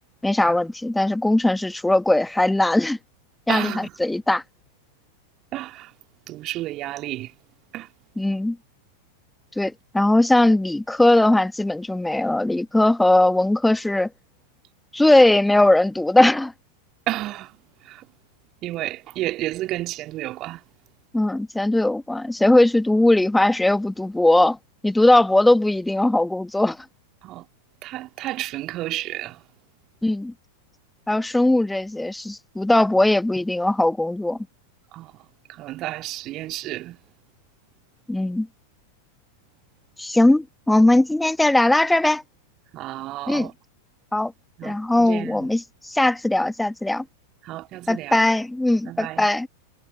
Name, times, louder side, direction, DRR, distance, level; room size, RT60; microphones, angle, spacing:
voice 1, 0.2-3.0 3.5-4.4 8.2-8.6 9.6-14.1 14.9-16.5 21.1-24.6 24.8-26.8 30.0-30.3 31.1-34.4 38.1-38.5 40.0-42.2 43.3-43.5 44.1-44.3 44.6-47.0 47.9-49.5, left 1 dB, 5° left, 1.5 m, -19 dB
voice 2, 3.5-4.0 5.5-5.9 6.3-7.3 7.7-7.9 17.1-18.1 18.6-20.6 27.2-27.5 27.8-29.4 34.9-37.0 42.7-43.5 44.6-45.5 47.4-48.2 48.8-49.3, right 16 dB, 35° right, 2.2 m, -32 dB
figure-of-eight pair, 90°, 0 cm